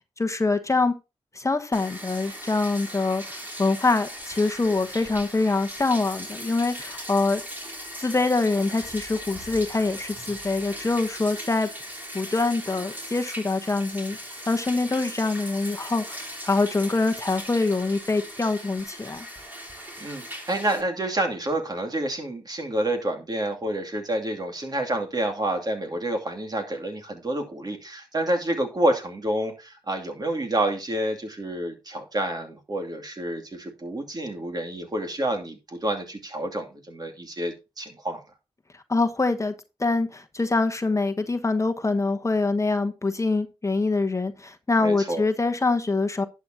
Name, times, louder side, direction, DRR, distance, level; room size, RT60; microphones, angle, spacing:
voice 1, 0.2-1.0 1.3-7.4 8.0-11.7 12.1-14.2 14.5-19.3 38.9-46.2, left 3 dB, 30° left, 1.0 m, -24 dB
Bathtub (filling or washing), 1.7-20.8, equal, 15° right, 3.6 m, -39 dB
voice 2, 20.0-38.2 44.8-45.2, right 1 dB, 40° right, 2.6 m, -28 dB
11.5 x 8.6 x 2.8 m
cardioid pair, 60°, 11 cm